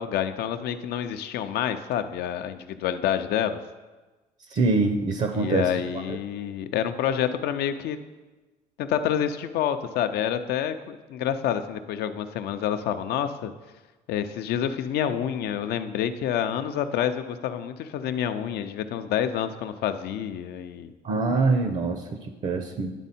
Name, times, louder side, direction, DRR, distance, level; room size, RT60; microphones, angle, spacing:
voice 1, 0.0-3.6 5.3-8.0 8.8-13.5 14.1-20.9, left 9 dB, 70° left, 10 dB, 0.5 m, -28 dB
voice 2, 4.5-5.7 6.1-6.2 21.0-22.9, right 3 dB, 45° right, 6 dB, 0.6 m, -24 dB
10.0 x 3.6 x 4.2 m, 1.2 s
cardioid pair, 110°, 17 cm